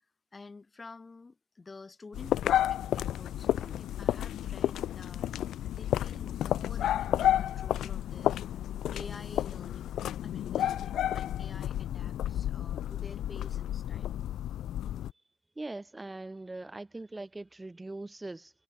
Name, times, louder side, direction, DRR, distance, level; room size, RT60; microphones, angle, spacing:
voice 1, 0.3-5.3 5.7-9.9 10.2-14.1, left 3 dB, 25° left, 4.2 m, -49 dB
sound 1, 2.1-15.1, left 11 dB, 75° left, 0.3 m, -31 dB
voice 2, 15.6-18.5, right 2 dB, 15° right, 1.1 m, -41 dB
cardioid pair, 90°, 0 cm